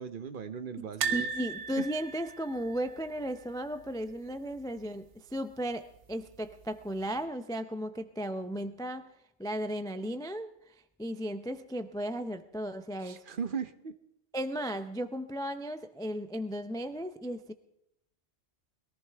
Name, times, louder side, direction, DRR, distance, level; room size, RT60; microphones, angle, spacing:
voice 1, 0.0-1.3 1.7-1.9 13.0-13.9, right 6 dB, 55° right, 11 dB, 0.8 m, -38 dB
voice 2, 0.8-9.1 9.4-13.2 14.3-17.5, equal, 5° left, 10 dB, 0.3 m, -35 dB
sound 1, 1.0-4.1 4.3-4.5 4.8-4.9 6.1-6.6 7.2-7.3, right 6 dB, 85° right, 1.1 m, -37 dB
21.5 x 14.5 x 3.4 m, 0.81 s
omnidirectional pair, 1.2 m